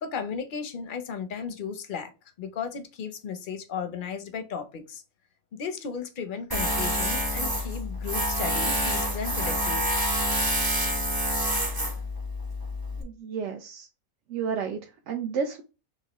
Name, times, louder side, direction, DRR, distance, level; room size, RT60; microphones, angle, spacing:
voice 1, 0.0-2.1 2.4-5.0 5.5-10.0, left 6 dB, 50° left, 0.7 m, -35 dB
Tools, 6.5-13.0, equal, 20° right, 0.7 m, -27 dB
voice 2, 13.0-13.9 14.3-15.6, right 6 dB, 65° right, 0.9 m, -31 dB
6.2 x 2.7 x 3.0 m
omnidirectional pair, 1.5 m